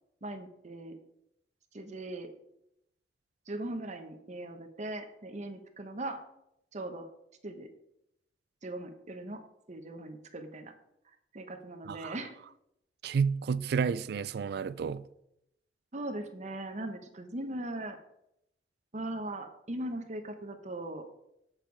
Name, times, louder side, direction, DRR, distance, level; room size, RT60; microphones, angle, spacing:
voice 1, 0.2-1.0 1.7-2.3 3.5-6.2 6.7-7.1 7.4-7.7 8.6-9.4 9.7-10.7 11.3-12.4 15.9-18.0 18.9-21.0, right 1 dB, 40° right, 1.0 m, -39 dB
voice 2, 11.9-12.2 13.0-15.0, right 6 dB, 60° right, 0.3 m, -30 dB
7.4 x 6.6 x 4.6 m
head